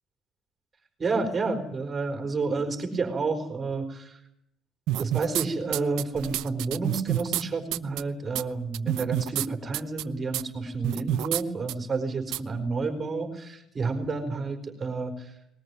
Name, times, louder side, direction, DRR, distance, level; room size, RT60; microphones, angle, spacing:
voice 1, 1.0-4.2 5.0-15.3, right 3 dB, 20° right, 6 dB, 4.2 m, -30 dB
sound 1, 4.9-5.4 5.7-7.4 7.7-8.0 8.3-8.4 8.7-9.5 9.7-10.0 10.3-10.4 10.8-11.4 11.7-11.8 12.3-12.4, right 14 dB, 75° right, 0.8 m, -28 dB
21.0 x 20.0 x 9.6 m, 0.78 s
cardioid pair, 170°, 0 cm